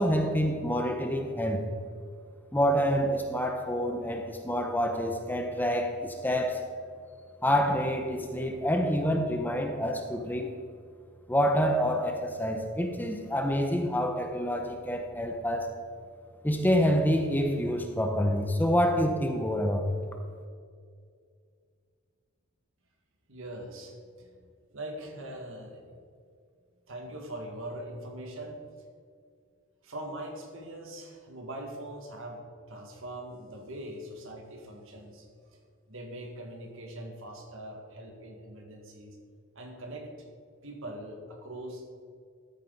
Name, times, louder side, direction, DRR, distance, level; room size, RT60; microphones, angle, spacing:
voice 1, 0.0-1.6 2.5-6.6 7.4-10.6 11.3-15.7 16.4-19.9, equal, 10° left, 4 dB, 0.7 m, -27 dB
voice 2, 23.3-24.4 24.7-26.0 26.9-28.6 29.8-32.4 32.7-35.6 35.9-39.2 39.6-40.1 40.6-41.9, right 1 dB, 60° right, 2 dB, 1.9 m, -42 dB
13.5 x 8.8 x 4.0 m, 2.2 s
head